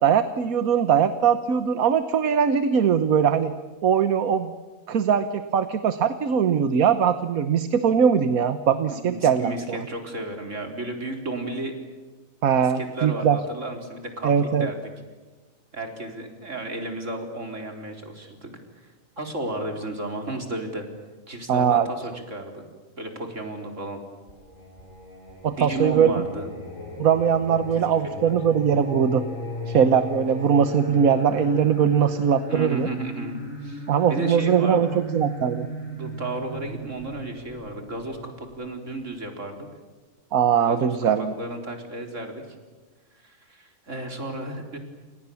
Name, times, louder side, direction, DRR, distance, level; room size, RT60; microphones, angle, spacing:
voice 1, 0.0-3.5 3.8-4.5 4.9-9.8 12.4-13.4 14.2-14.7 21.5-21.9 25.4-26.1 27.0-29.2 29.7-32.9 33.9-35.7 40.3-41.3, right 7 dB, 80° right, 11 dB, 1.5 m, -21 dB
voice 2, 8.9-11.7 12.7-14.7 15.7-18.5 19.2-20.9 21.3-22.6 23.0-24.0 25.6-26.5 27.8-28.4 32.5-35.0 35.9-39.7 40.7-42.4 43.2-44.8, right 2 dB, 60° right, 4 dB, 4.4 m, -33 dB
Singing, 24.3-39.0, equal, 65° left, 7.3 m, -37 dB
30.0 x 28.0 x 7.1 m, 1.3 s
omnidirectional pair, 1.5 m